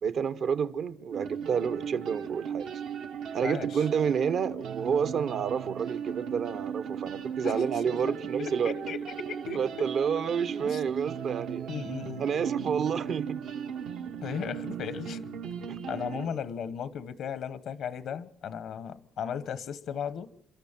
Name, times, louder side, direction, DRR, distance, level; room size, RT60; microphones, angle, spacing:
voice 1, 0.0-2.7 3.3-8.7 9.5-11.7 12.2-13.4 15.7-15.8, right 7 dB, 65° right, 0.8 m, -29 dB
sound 1, 1.1-16.3, right 7 dB, 85° right, 1.1 m, -37 dB
voice 2, 3.4-3.9 7.4-9.9 10.6-10.8 11.7-12.2 14.2-15.2 15.9-20.3, left 7 dB, 75° left, 1.0 m, -36 dB
28.5 x 13.5 x 7.3 m
cardioid pair, 90°, 0 cm